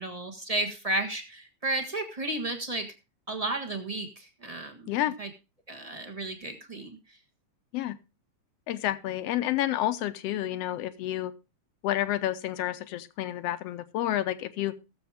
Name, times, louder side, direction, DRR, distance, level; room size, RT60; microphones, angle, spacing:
voice 1, 0.0-2.9 3.3-4.9 5.2-5.3 5.7-7.0, right 2 dB, 30° right, 4 dB, 0.6 m, -33 dB
voice 2, 8.7-11.3 11.8-14.7, left 13 dB, 70° left, 12 dB, 1.7 m, -29 dB
19.5 x 7.2 x 3.5 m, 0.29 s
omnidirectional pair, 3.4 m